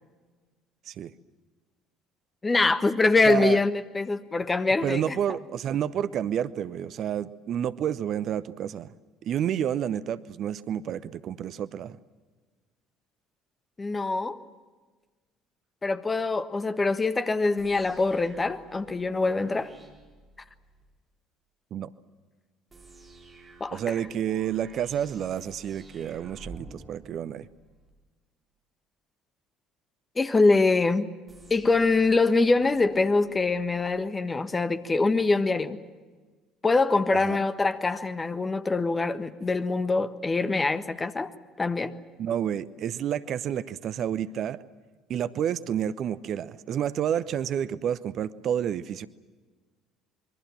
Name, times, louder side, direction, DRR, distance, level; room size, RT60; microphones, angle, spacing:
voice 1, 2.4-5.2 13.8-14.4 15.8-19.7 23.6-23.9 30.1-31.1 31.5-35.8 36.6-41.3 41.6-42.0, left 3 dB, 20° left, 1.4 m, -24 dB
voice 2, 3.3-3.6 4.8-8.9 9.2-12.0 21.7-21.9 23.7-27.5 37.2-37.4 42.2-44.6 45.1-49.1, right 9 dB, 50° right, 0.8 m, -29 dB
sound 1, 17.6-20.8 22.7-27.9 31.3-33.9, right 3 dB, 25° right, 4.8 m, -50 dB
27.0 x 22.5 x 7.5 m
figure-of-eight pair, 55°, 0 cm